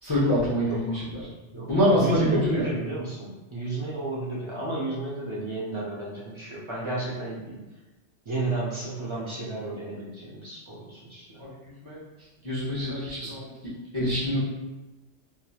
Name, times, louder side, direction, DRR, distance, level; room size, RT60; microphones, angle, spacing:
voice 1, 0.0-0.9 1.7-2.6 11.4-11.5 11.8-12.0 12.4-13.5 13.9-14.4, equal, 25° left, -11 dB, 0.8 m, -24 dB
voice 2, 0.7-1.0 1.5-7.6 8.3-11.5 13.2-13.4, right 2 dB, 40° right, -7 dB, 0.4 m, -33 dB
2.9 x 2.5 x 2.3 m, 1.1 s
omnidirectional pair, 1.2 m